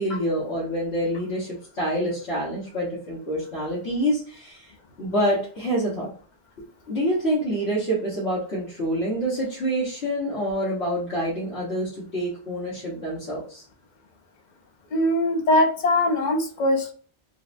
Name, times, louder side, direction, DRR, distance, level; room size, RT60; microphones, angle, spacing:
voice 1, 0.0-4.7 5.0-6.1 6.9-13.6, equal, 85° left, -8 dB, 1.5 m, -27 dB
voice 2, 14.9-16.9, left 1 dB, 50° left, 3 dB, 0.7 m, -21 dB
4.1 x 2.1 x 2.5 m, 0.41 s
omnidirectional pair, 1.1 m